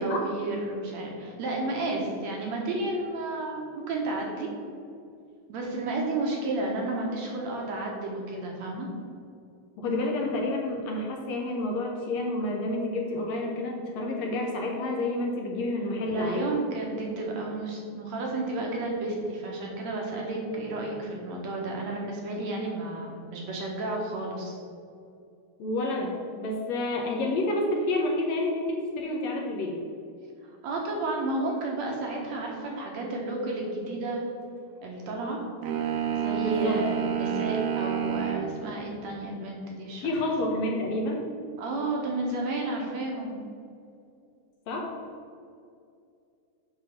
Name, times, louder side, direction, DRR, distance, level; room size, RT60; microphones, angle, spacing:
voice 1, 0.0-4.5 5.5-8.9 16.1-24.6 30.6-34.2 34.8-35.4 36.1-40.1 41.6-43.4, right 2 dB, 65° right, -1 dB, 1.9 m, -32 dB
voice 2, 9.8-16.5 25.6-29.8 36.4-36.8 40.0-41.3 44.7-44.9, left 1 dB, 75° left, 0 dB, 1.6 m, -29 dB
sound 1, 35.6-38.5, right 9 dB, 85° right, 2.9 m, -28 dB
9.4 x 4.0 x 5.8 m, 2.5 s
omnidirectional pair, 4.2 m